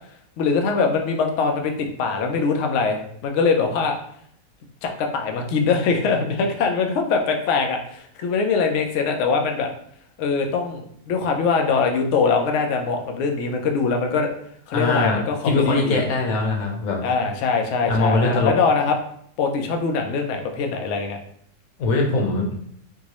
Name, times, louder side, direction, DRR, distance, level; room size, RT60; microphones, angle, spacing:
voice 1, 0.4-4.0 4.8-9.7 10.2-14.3 14.7-16.0 17.0-19.0 19.4-21.2, left 5 dB, 85° left, 4 dB, 0.6 m, -22 dB
voice 2, 14.7-15.2 15.4-17.0 17.9-18.5 21.8-22.5, left 3 dB, 65° left, 0 dB, 1.1 m, -21 dB
4.5 x 2.0 x 2.9 m, 0.67 s
omnidirectional pair, 1.8 m